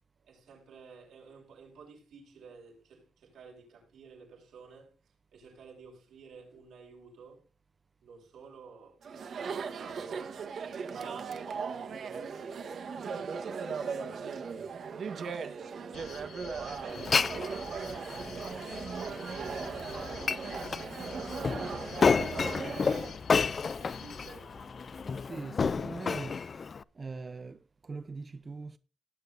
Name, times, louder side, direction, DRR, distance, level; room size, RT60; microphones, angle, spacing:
voice 1, 0.2-4.9 5.3-7.4 8.0-10.4 10.9-14.4 15.1-19.2 19.5-22.1 23.0-24.7, right 5 dB, 85° right, 7.3 m, -53 dB
Chatter, 9.0-23.2, right 5 dB, 70° right, 1.4 m, -38 dB
sound 1, 15.9-25.3, left 5 dB, 80° left, 4.0 m, -49 dB
Glass, 16.9-26.8, left 5 dB, 45° left, 0.5 m, -31 dB
voice 2, 25.2-26.5 26.9-28.8, right 4 dB, 35° right, 0.7 m, -42 dB
19.0 x 9.2 x 2.7 m
cardioid pair, 85°, 0 cm